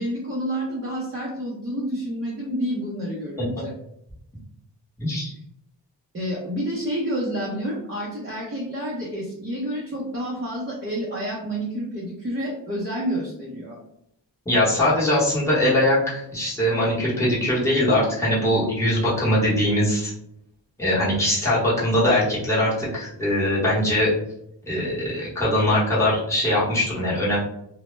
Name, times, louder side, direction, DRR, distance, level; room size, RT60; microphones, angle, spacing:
voice 1, 0.0-3.7 6.1-13.8, equal, 30° right, -5 dB, 0.6 m, -29 dB
voice 2, 5.0-5.3 14.5-20.1 20.8-24.1 24.7-27.4, left 1 dB, 5° left, -9 dB, 0.9 m, -21 dB
2.1 x 2.0 x 3.0 m, 0.76 s
wide cardioid pair, 125°, 43 cm